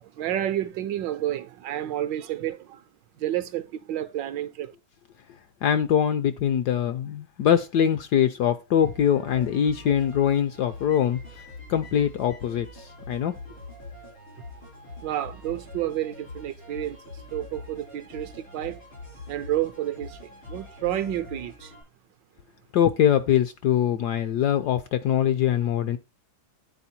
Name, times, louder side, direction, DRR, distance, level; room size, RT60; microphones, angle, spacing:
voice 1, 0.0-2.8 3.2-4.7 15.0-17.0 17.3-18.8 19.3-21.7, right 12 dB, 75° right, 1.2 m, -30 dB
voice 2, 5.6-11.2 11.7-13.3 22.7-26.0, left 9 dB, 70° left, 1.0 m, -23 dB
sound 1, 8.8-21.8, left 2 dB, 90° left, 5.6 m, -43 dB
9.7 x 4.3 x 4.2 m
omnidirectional pair, 2.2 m